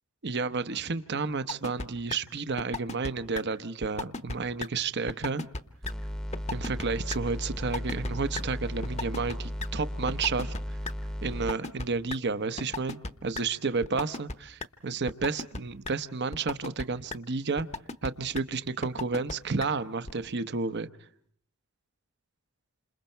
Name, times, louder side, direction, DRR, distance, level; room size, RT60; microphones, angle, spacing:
voice 1, 0.2-5.4 6.5-10.8 11.2-17.7 18.0-20.9, right 4 dB, 50° right, 0.9 m, -31 dB
sound 1, 1.5-2.2 2.6-3.1 3.3-3.4 3.8-4.4 4.6-4.7 5.1-5.6 5.8-5.9 6.3-6.8 7.1-7.2 7.6-8.1 8.4-8.5 8.8-9.7 10.1-10.9 11.3-12.2 12.6-13.1 13.3-13.4 13.8-14.3 14.6-14.7 15.1-15.6 15.8-15.9 16.3-16.8 17.1-17.2 17.6-18.1 18.3-18.4 18.8-19.3 19.6-19.7 20.1-20.2, left 3 dB, 30° left, 0.9 m, -34 dB
sound 2, 5.8-11.5, equal, 5° left, 0.9 m, -35 dB
29.0 x 27.5 x 4.5 m
head